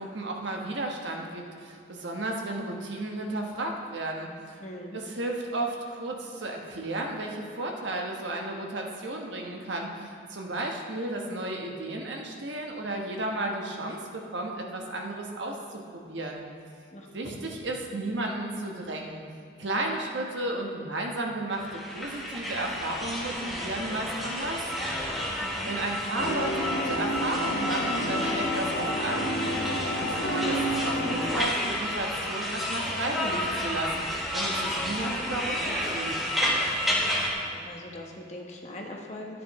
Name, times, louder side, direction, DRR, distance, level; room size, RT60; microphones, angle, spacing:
voice 1, 0.0-4.6 4.9-16.4 17.1-19.2 19.6-24.9 25.7-29.3 29.9-36.2, right 2 dB, 80° right, 1 dB, 1.2 m, -33 dB
voice 2, 4.6-5.0 16.9-17.4 25.4-25.7 37.2-39.4, left 1 dB, 35° left, 0 dB, 1.1 m, -42 dB
sound 1, 21.5-37.3, left 1 dB, ahead, 1.4 m, -31 dB
sound 2, 26.2-31.4, equal, 90° left, 1.4 m, -30 dB
13.5 x 9.4 x 3.2 m, 2.2 s
head